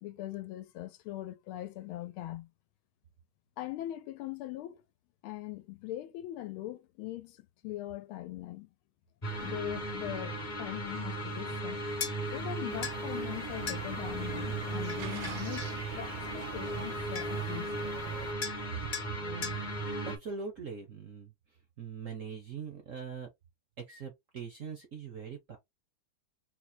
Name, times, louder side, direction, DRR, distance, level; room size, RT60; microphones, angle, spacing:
voice 1, 0.0-2.5 3.6-4.8 5.2-8.7 9.4-11.8 12.3-17.7, left 15 dB, 85° left, 1.5 m, -41 dB
sound 1, 9.2-20.2, right 1 dB, 35° left, 0.8 m, -37 dB
sound 2, 12.0-12.2 12.8-13.0 13.7-13.8 14.9-15.8 16.8-16.9 17.1-17.5 18.4-18.6 18.9-19.1 19.4-19.6, left 6 dB, 55° left, 0.5 m, -38 dB
sound 3, 12.7-18.3, right 12 dB, 75° right, 1.3 m, -45 dB
voice 2, 19.2-19.6 20.0-21.3 21.8-23.3 23.8-25.6, right 6 dB, 55° right, 0.9 m, -42 dB
4.1 x 2.2 x 4.3 m
omnidirectional pair, 2.3 m